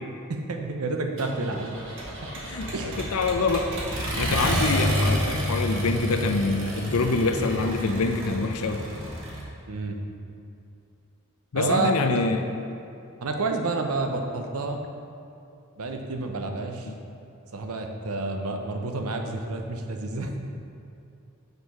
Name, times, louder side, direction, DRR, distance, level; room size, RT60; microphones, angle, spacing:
voice 1, 0.3-1.8 2.7-3.0 3.4-3.5 9.7-10.0 11.6-11.9 13.2-14.8 15.8-16.9 17.5-20.3, right 3 dB, 85° right, 4 dB, 0.7 m, -29 dB
Accelerating revving vroom, 1.2-9.4, equal, 60° right, 1.4 m, -29 dB
voice 2, 2.4-3.7 4.2-8.8 11.5-12.4 16.9-17.0, left 3 dB, 85° left, 6 dB, 0.6 m, -25 dB
6.7 x 4.7 x 5.4 m, 2.6 s
head